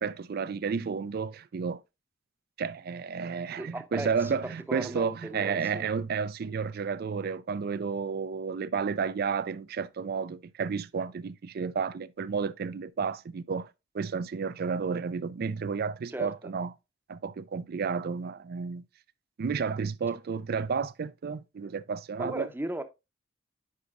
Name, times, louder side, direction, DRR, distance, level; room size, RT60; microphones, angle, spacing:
voice 1, 0.0-1.8 2.6-13.7 13.9-16.7 17.1-18.8 19.4-22.5, right 5 dB, 55° right, 0.4 m, -32 dB
voice 2, 3.6-4.4 4.7-5.9 16.1-16.5 22.2-22.8, right 1 dB, 10° right, 0.7 m, -37 dB
9.7 x 5.0 x 2.5 m
head